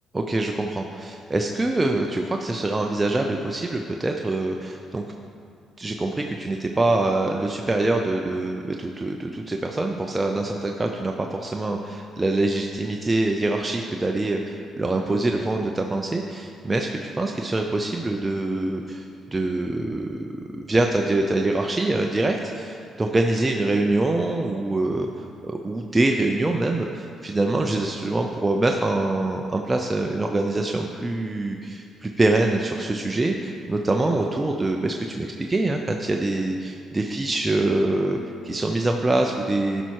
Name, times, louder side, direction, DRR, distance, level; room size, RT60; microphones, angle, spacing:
voice 1, 0.1-5.0 5.8-38.2 38.4-39.8, right 2 dB, 20° right, 2 dB, 0.6 m, -24 dB
12.0 x 5.6 x 4.7 m, 2.4 s
cardioid pair, 90°, 0 cm